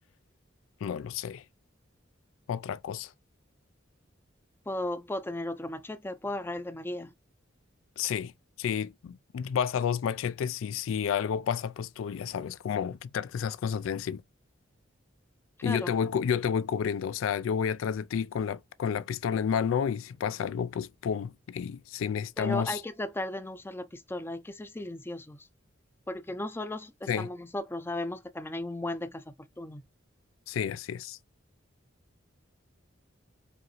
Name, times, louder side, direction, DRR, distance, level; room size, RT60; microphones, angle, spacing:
voice 1, 0.8-1.4 2.5-3.1 8.0-8.3 8.6-14.2 15.6-22.8 27.1-27.3 30.5-31.2, left 7 dB, 85° left, 0.3 m, -30 dB
voice 2, 4.7-7.1 15.6-15.9 22.4-25.5 26.1-29.8, left 1 dB, 10° left, 0.4 m, -36 dB
5.0 x 2.5 x 3.0 m
head